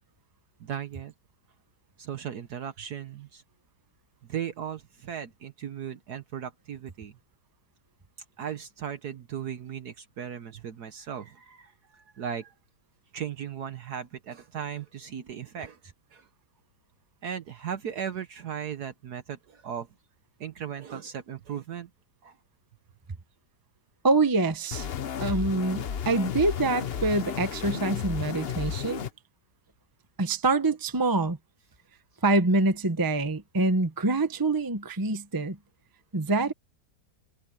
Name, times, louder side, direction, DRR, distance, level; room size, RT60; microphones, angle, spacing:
voice 1, 0.6-1.1 2.0-3.4 4.2-7.1 8.4-12.5 13.1-16.3 17.2-19.9 20.4-21.9 22.2-22.4, right 8 dB, 65° right, 1.5 m, -37 dB
voice 2, 24.0-24.9 25.2-29.0 30.2-31.4 32.2-35.6 36.1-36.5, right 2 dB, 15° right, 0.9 m, -25 dB
sound 1, 24.7-29.1, left 8 dB, 50° left, 0.8 m, -33 dB
omnidirectional pair, 1.9 m